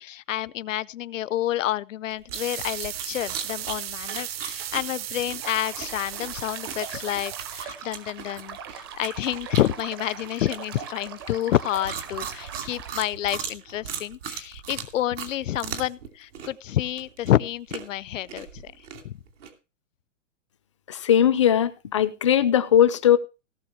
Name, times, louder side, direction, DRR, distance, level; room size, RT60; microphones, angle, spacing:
voice 1, 0.0-18.7 19.0-19.2, left 13 dB, 75° left, 20 dB, 0.7 m, -29 dB
sound 1, 2.1-16.1 16.3-19.5, right 7 dB, 70° right, 2.8 m, -38 dB
sound 2, 2.3-7.6, right 11 dB, 50° right, 0.8 m, -36 dB
sound 3, 5.4-13.0, right 7 dB, 20° right, 0.6 m, -40 dB
voice 2, 20.9-23.2, left 10 dB, 25° left, 13 dB, 0.5 m, -19 dB
17.5 x 6.9 x 4.4 m, 0.30 s
hypercardioid pair, 175°, 38 cm